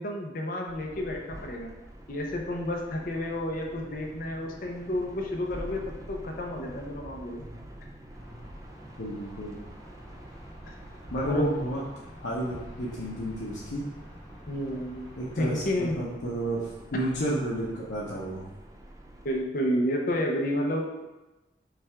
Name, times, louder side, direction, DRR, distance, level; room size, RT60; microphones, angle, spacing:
voice 1, 0.0-1.7 2.1-7.5 11.2-11.5 14.5-15.1 15.4-16.0 16.9-17.1 19.2-21.0, left 1 dB, 50° left, 0 dB, 0.7 m, -31 dB
sound 1, 0.7-19.4, right 1 dB, 20° right, 0.4 m, -46 dB
sound 2, 8.1-15.9, equal, 15° left, 1.2 m, -50 dB
voice 2, 9.0-9.6 11.1-11.8 12.2-13.8 15.2-18.4, right 1 dB, 85° left, -7 dB, 0.8 m, -31 dB
5.8 x 2.4 x 3.4 m, 1.1 s
head